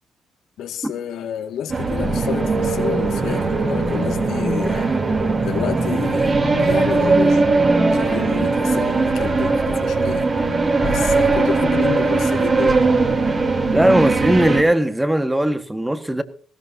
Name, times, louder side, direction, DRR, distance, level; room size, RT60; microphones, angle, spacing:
voice 1, 0.6-4.9 5.4-7.4 7.9-10.3 10.8-12.9, left 9 dB, 80° left, 1.9 m, -29 dB
sound 1, 1.7-14.6, right 3 dB, 35° right, 3.2 m, -19 dB
voice 2, 13.7-16.2, right 1 dB, 10° right, 1.5 m, -18 dB
20.0 x 16.5 x 2.7 m
cardioid pair, 90°, 0 cm